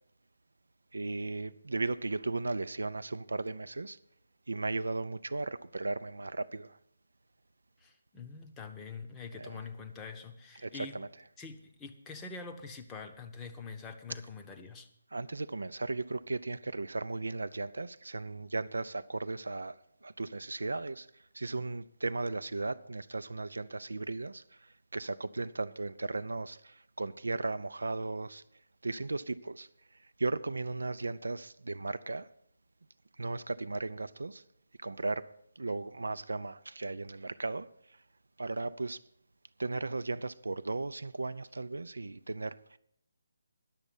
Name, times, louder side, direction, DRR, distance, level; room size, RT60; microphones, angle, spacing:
voice 1, 0.9-4.0 4.5-6.8 9.3-9.6 10.6-11.1 15.1-28.4 28.8-29.7 30.2-32.3 33.2-34.4 34.8-37.7 38.4-39.0 39.6-42.8, right 3 dB, 65° right, 0.4 m, -36 dB
voice 2, 7.8-11.0 11.4-14.9, left 4 dB, 10° left, 0.8 m, -45 dB
10.5 x 7.0 x 8.3 m
figure-of-eight pair, 145°, 0 cm